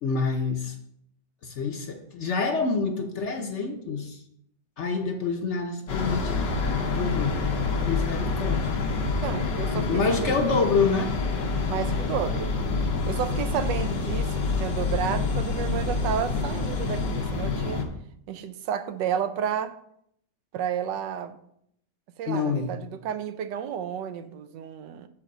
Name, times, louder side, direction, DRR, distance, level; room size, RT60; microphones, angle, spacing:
voice 1, 0.0-0.7 1.4-4.2 4.8-6.3 6.9-7.4 7.8-8.8 9.8-11.1 22.3-22.8, left 4 dB, 55° left, 4 dB, 0.9 m, -27 dB
sound 1, 5.9-17.8, left 4 dB, 85° left, 1.8 m, -27 dB
voice 2, 9.2-10.3 11.7-12.5 12.8-17.8 18.3-19.7 20.5-21.4 22.2-25.1, right 8 dB, 85° right, 10 dB, 1.3 m, -31 dB
6.1 x 4.9 x 6.6 m, 0.71 s
omnidirectional pair, 1.9 m